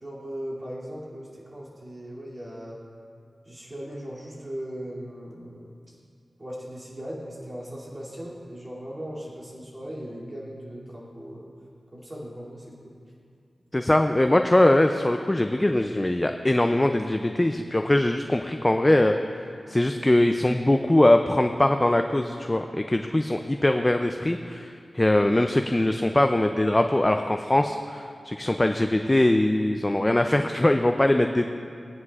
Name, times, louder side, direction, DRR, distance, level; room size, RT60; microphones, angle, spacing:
voice 1, 0.0-2.8 3.4-5.7 6.4-11.5 11.9-12.9, equal, 30° right, -7 dB, 2.6 m, -38 dB
voice 2, 13.7-19.2 19.7-31.5, left 1 dB, 20° left, 5 dB, 0.4 m, -22 dB
18.5 x 9.5 x 2.4 m, 2.3 s
wide cardioid pair, 95°, 0 cm